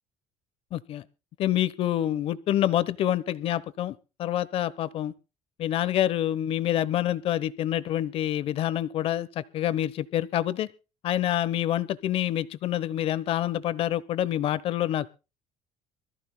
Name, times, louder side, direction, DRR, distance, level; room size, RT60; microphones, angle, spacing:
voice 1, 0.7-1.0 1.4-5.1 5.6-10.7 11.0-15.1, left 12 dB, 45° left, 0.9 m, -27 dB
25.0 x 14.0 x 2.2 m
cardioid pair, 165°, 13 cm